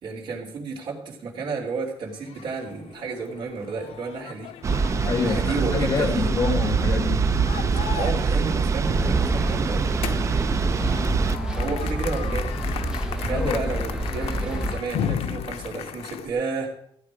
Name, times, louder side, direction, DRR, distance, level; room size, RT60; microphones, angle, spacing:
voice 1, 0.0-4.5 5.2-6.3 7.9-10.0 11.6-12.5 13.2-16.7, right 4 dB, 50° right, 0 dB, 3.4 m, -31 dB
sound 1, 2.1-16.3, left 9 dB, 85° left, 0.7 m, -36 dB
sound 2, 4.6-11.4, right 5 dB, 30° right, 0.6 m, -24 dB
voice 2, 5.1-7.3 13.2-13.7, left 5 dB, 35° left, 7 dB, 0.7 m, -27 dB
sound 3, 8.8-14.8, right 1 dB, 5° right, 0.9 m, -28 dB
15.0 x 8.6 x 5.0 m, 0.70 s
cardioid pair, 175°, 10 cm